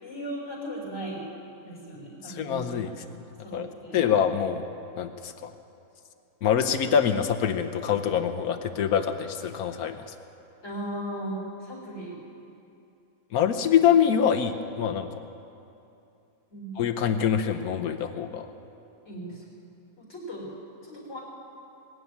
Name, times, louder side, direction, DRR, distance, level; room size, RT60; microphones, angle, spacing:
voice 1, 0.0-1.3 1.6-2.8 3.4-4.0 10.6-12.2 16.5-16.7 19.0-19.4 20.0-20.5 20.8-21.2, right 1 dB, 45° left, -4 dB, 4.6 m, -37 dB
voice 2, 2.2-2.9 3.5-3.7 3.9-4.7 5.0-5.5 6.4-10.0 13.3-15.1 16.8-18.5, left 8 dB, 70° left, 7 dB, 1.3 m, -25 dB
21.0 x 7.2 x 9.5 m, 2.7 s
omnidirectional pair, 1.7 m